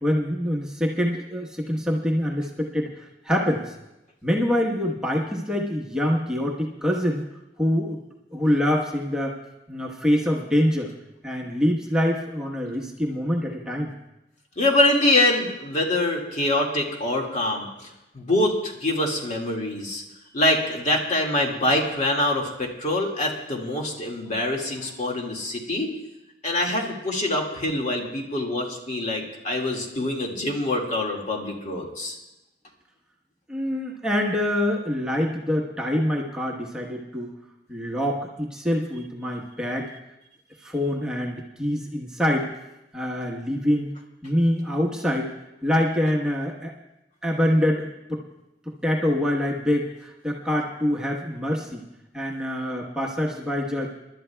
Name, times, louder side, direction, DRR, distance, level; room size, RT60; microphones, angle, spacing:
voice 1, 0.0-3.7 4.2-7.3 7.6-8.0 8.3-9.4 9.7-10.9 11.2-13.9 33.5-37.3 37.7-39.9 40.6-42.5 42.9-43.9 44.2-45.3 45.6-46.7 47.2-48.2 48.8-51.8 52.1-53.9, equal, 5° right, -2 dB, 1.1 m, -25 dB
voice 2, 14.6-17.7 18.1-20.0 20.3-25.9 26.4-32.2, left 1 dB, 40° left, 0 dB, 2.0 m, -24 dB
28.5 x 12.0 x 2.3 m, 0.92 s
head